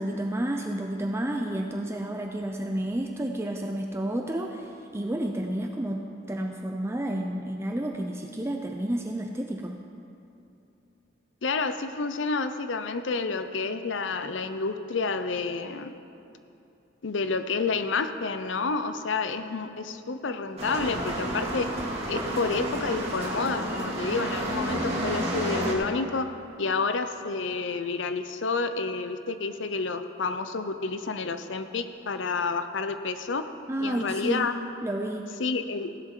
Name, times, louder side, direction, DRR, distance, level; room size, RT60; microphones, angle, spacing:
voice 1, 0.0-9.8 33.7-34.5 34.8-35.3, right 1 dB, 15° right, 2 dB, 0.5 m, -31 dB
voice 2, 11.4-15.9 17.0-21.7 22.1-26.3 26.6-33.4 33.8-34.6 35.4-35.9, left 4 dB, 75° left, 10 dB, 0.6 m, -29 dB
sound 1, 20.6-25.7, right 1 dB, 35° right, 2.4 m, -30 dB
16.5 x 11.5 x 3.8 m, 2.8 s
head